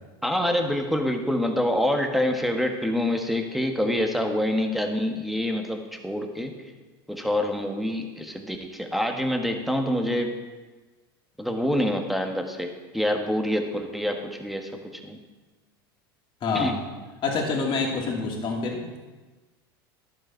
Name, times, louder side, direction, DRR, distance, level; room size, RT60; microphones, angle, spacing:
voice 1, 0.2-6.5 7.1-10.3 11.4-15.2 16.5-16.8, left 1 dB, ahead, 3 dB, 1.4 m, -26 dB
voice 2, 16.4-16.7 17.2-19.0, left 4 dB, 40° left, -1 dB, 2.6 m, -27 dB
11.0 x 8.1 x 4.5 m, 1.3 s
hypercardioid pair, 95°, 13 cm